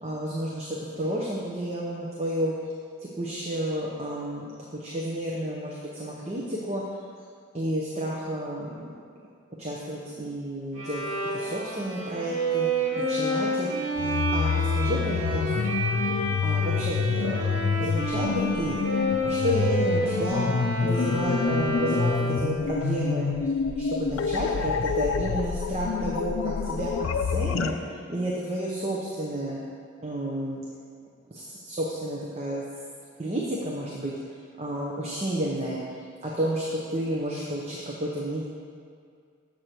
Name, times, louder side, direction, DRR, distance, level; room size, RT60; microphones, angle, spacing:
voice 1, 0.0-2.5 3.2-6.8 7.5-8.9 9.6-11.0 11.3-13.7 14.3-15.8 16.4-18.8 19.2-23.3 23.8-29.6 30.0-30.6 31.3-32.6 33.2-34.1 34.6-35.8 36.2-38.4, equal, 30° right, -4 dB, 0.8 m, -31 dB
Bowed string instrument, 10.7-22.6, right 1 dB, 85° right, 1.7 m, -30 dB
sound 1, 14.0-27.7, left 5 dB, 80° left, 0.4 m, -27 dB
7.7 x 6.6 x 4.5 m, 2.2 s
head